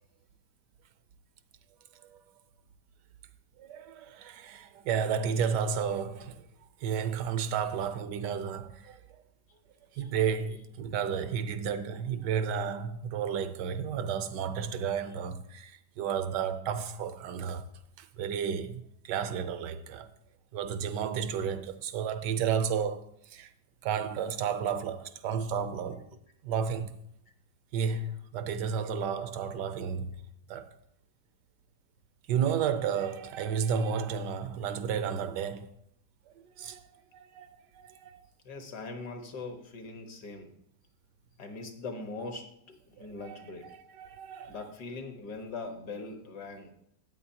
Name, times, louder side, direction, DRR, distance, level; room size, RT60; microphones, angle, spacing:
voice 1, 3.6-6.5 6.8-9.2 9.9-17.7 18.0-20.1 20.5-23.5 23.8-26.1 26.4-27.0 27.7-30.1 30.5-30.7 32.3-35.7 36.6-36.8 37.1-38.2 43.0-44.6, right 7 dB, 85° right, 1.3 m, -32 dB
voice 2, 38.5-40.5 41.4-43.7 44.5-46.7, left 3 dB, 70° left, 1.9 m, -41 dB
13.5 x 8.5 x 2.8 m
omnidirectional pair, 1.8 m